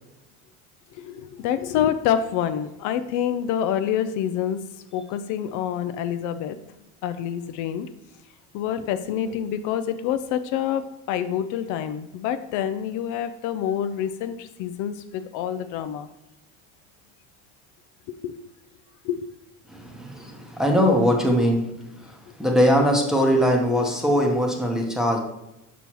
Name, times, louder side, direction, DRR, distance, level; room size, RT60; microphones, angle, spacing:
voice 1, 1.0-4.6 4.9-6.6 7.0-7.9 8.5-16.1 18.2-18.4 19.0-19.3, left 9 dB, 65° left, 10 dB, 0.5 m, -27 dB
voice 2, 19.7-25.2, equal, ahead, 1 dB, 0.8 m, -21 dB
6.1 x 5.3 x 3.0 m, 0.93 s
cardioid pair, 130°, 33 cm